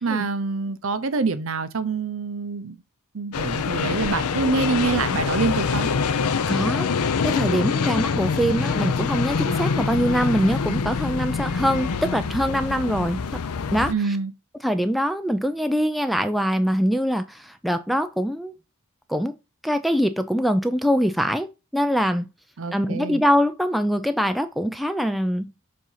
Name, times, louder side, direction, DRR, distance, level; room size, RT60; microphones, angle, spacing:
voice 1, 0.0-2.8 3.1-5.9 13.9-14.3 22.6-23.2, right 4 dB, 65° right, 0.7 m, -26 dB
sound 1, 3.3-13.9, left 5 dB, 90° left, 0.6 m, -25 dB
voice 2, 6.5-13.2 13.7-14.2 14.6-18.5 19.1-19.3 19.6-21.5 21.7-22.3 22.7-25.5, equal, ahead, 0.3 m, -23 dB
7.4 x 2.7 x 5.6 m
head